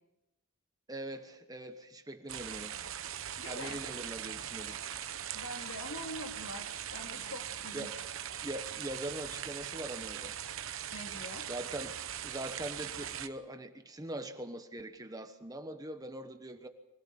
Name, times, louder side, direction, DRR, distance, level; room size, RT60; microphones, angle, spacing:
voice 1, 0.9-2.8 3.4-4.8 7.7-8.0 8.4-10.4 11.5-11.9 12.2-16.7, right 1 dB, 15° right, 7 dB, 1.1 m, -42 dB
sound 1, 2.3-13.3, right 9 dB, 60° right, 1.0 m, -41 dB
voice 2, 3.4-3.8 5.3-7.9 10.9-11.5, left 1 dB, 65° left, 3 dB, 3.0 m, -44 dB
24.5 x 18.0 x 7.1 m, 0.92 s
head